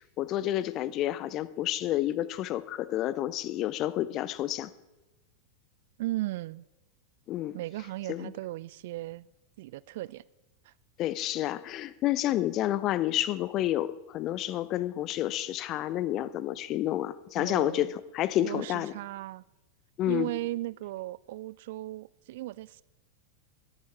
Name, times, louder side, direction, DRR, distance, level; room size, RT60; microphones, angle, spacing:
voice 1, 0.0-4.7 7.3-7.6 8.1-8.3 11.0-18.9 20.0-20.3, left 13 dB, 35° left, 0.6 m, -30 dB
voice 2, 6.0-6.6 7.5-9.3 9.6-10.2 10.6-10.7 17.4-17.9 18.4-19.4 20.1-22.8, right 17 dB, 55° right, 0.3 m, -36 dB
21.5 x 11.0 x 3.4 m
figure-of-eight pair, 90°, 0 cm